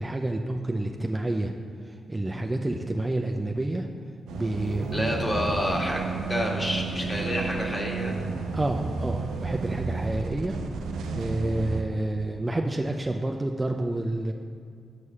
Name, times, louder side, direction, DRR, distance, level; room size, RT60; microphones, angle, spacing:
voice 1, 0.0-1.5 1.8-3.9 4.3-5.2 8.5-10.6 11.1-14.3, right 2 dB, 25° right, 3 dB, 0.5 m, -29 dB
sound 1, 4.3-11.8, right 4 dB, 85° right, 0.5 m, -32 dB
voice 2, 4.9-8.2 10.6-10.8, left 1 dB, 25° left, -1 dB, 1.6 m, -29 dB
7.0 x 4.8 x 5.5 m, 2.2 s
supercardioid pair, 45°, 0 cm